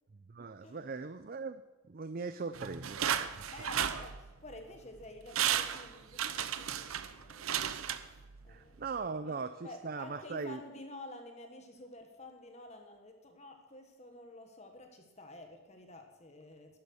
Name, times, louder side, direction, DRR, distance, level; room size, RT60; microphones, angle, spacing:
voice 1, 0.1-1.6 1.9-3.4 8.5-10.6, right 4 dB, 45° right, 11 dB, 0.5 m, -40 dB
sound 1, 2.5-4.6 5.0-5.1 5.3-8.5 8.9-9.0, right 9 dB, 80° right, 0.8 m, -34 dB
voice 2, 3.5-9.4 9.6-16.8, left 2 dB, 30° left, 5 dB, 1.3 m, -51 dB
12.0 x 11.0 x 6.4 m, 1.2 s
head